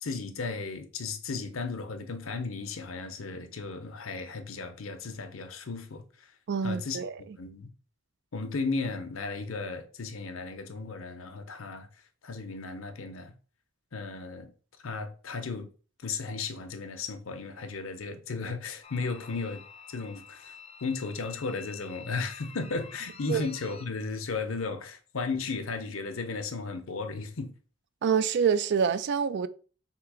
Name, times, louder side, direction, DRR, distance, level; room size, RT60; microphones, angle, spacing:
voice 1, 0.0-6.3 6.6-7.7 8.3-11.9 12.2-13.3 13.9-14.5 14.8-15.7 16.0-19.6 19.9-20.5 20.8-27.5, left 4 dB, 70° left, 0.7 m, -35 dB
voice 2, 6.5-7.1 23.3-23.5 28.0-29.5, right 6 dB, 55° right, 0.4 m, -26 dB
sound 1, 18.8-23.9, left 6 dB, 30° left, 0.5 m, -49 dB
3.7 x 2.8 x 4.7 m
head